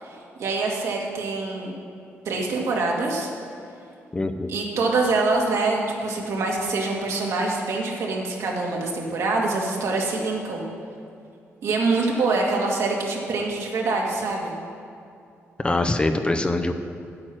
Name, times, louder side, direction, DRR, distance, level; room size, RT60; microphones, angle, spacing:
voice 1, 0.0-1.7 2.3-3.3 4.5-10.6 11.6-14.5, right 3 dB, 75° right, -1 dB, 2.0 m, -25 dB
voice 2, 4.1-4.5 15.6-16.7, left 2 dB, 20° left, 7 dB, 0.6 m, -23 dB
9.4 x 8.7 x 6.2 m, 2.5 s
cardioid pair, 100°, 5 cm